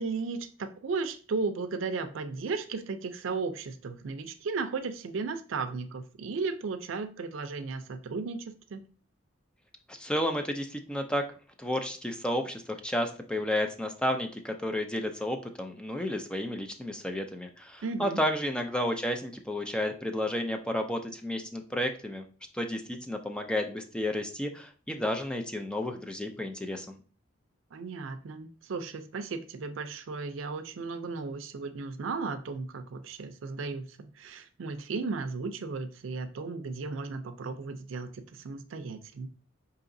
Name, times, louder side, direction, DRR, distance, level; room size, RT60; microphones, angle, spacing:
voice 1, 0.0-8.8 17.8-18.2 27.7-39.3, right 4 dB, 80° right, 9 dB, 0.4 m, -35 dB
voice 2, 9.9-11.2 11.6-22.2 22.5-27.0, left 1 dB, 5° left, 5 dB, 0.4 m, -32 dB
4.8 x 2.8 x 2.6 m, 0.39 s
head